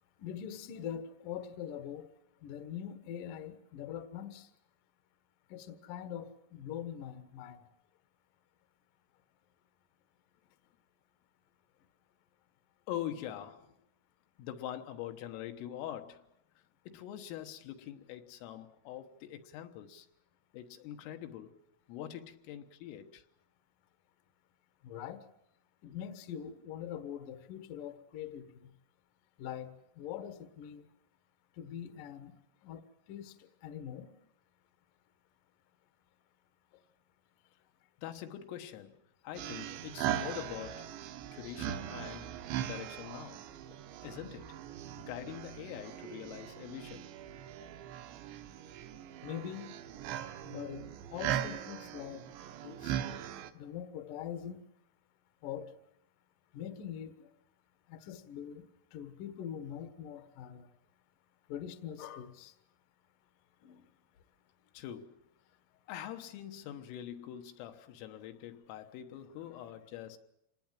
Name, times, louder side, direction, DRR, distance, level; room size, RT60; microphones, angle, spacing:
voice 1, 0.2-2.1 2.4-4.5 5.5-7.6 24.8-25.2 25.8-28.7 29.4-30.8 31.6-32.3 32.6-32.8 33.1-33.3 33.6-34.1 49.2-49.7 50.4-52.2 52.6-52.9 53.5-54.6 55.4-55.7 56.5-57.3 57.9-58.6 58.9-60.7 61.5-62.5 63.6-63.9, left 9 dB, 65° left, 2.1 m, -43 dB
voice 2, 12.9-13.7 14.4-16.3 16.9-20.1 20.5-21.6 21.9-23.2 38.0-39.0 39.2-40.9 41.3-43.4 44.0-44.6 45.0-47.1 64.7-65.2 65.9-70.2, left 11 dB, 85° left, 3.8 m, -44 dB
sound 1, 39.3-53.5, right 11 dB, 75° right, 3.1 m, -40 dB
26.5 x 19.5 x 7.5 m
omnidirectional pair, 5.7 m